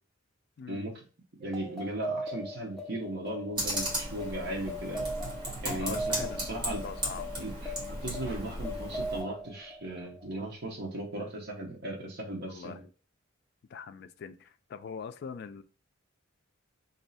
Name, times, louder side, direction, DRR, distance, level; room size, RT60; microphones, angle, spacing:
voice 1, 0.6-0.9 5.8-6.4 6.8-7.3 12.5-12.9 13.7-15.6, left 6 dB, 55° left, 0.3 m, -42 dB
sound 1, 1.4-10.4, equal, ahead, 0.7 m, -40 dB
voice 2, 1.4-5.1 5.6-6.9 7.4-12.8, right 1 dB, 55° right, 0.8 m, -37 dB
Computer keyboard, 3.6-9.2, right 1 dB, 25° right, 1.2 m, -36 dB
sound 2, 8.2-10.6, right 1 dB, 75° right, 1.0 m, -53 dB
3.2 x 2.6 x 3.9 m
head